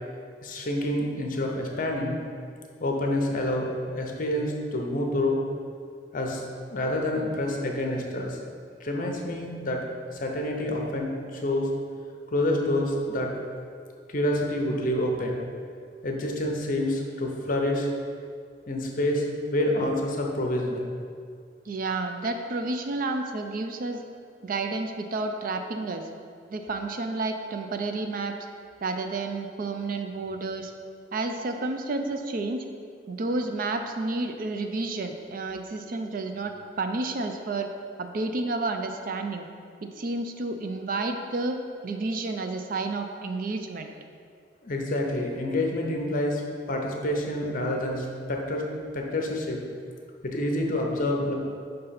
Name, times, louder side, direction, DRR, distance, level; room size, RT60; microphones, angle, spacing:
voice 1, 0.4-2.2 2.8-5.4 6.1-6.4 6.7-8.4 8.8-9.8 10.1-11.7 12.3-13.3 14.1-15.4 16.0-17.9 18.7-20.9 44.6-46.4 46.7-48.6 48.9-49.6 50.2-51.3, left 1 dB, 50° left, 1 dB, 0.8 m, -27 dB
voice 2, 21.7-24.0 24.4-26.1 26.5-28.3 28.8-30.7 31.1-32.6 33.1-37.7 38.0-39.5 39.8-43.9, right 3 dB, 50° right, 5 dB, 0.4 m, -30 dB
5.3 x 3.9 x 5.7 m, 2.2 s
head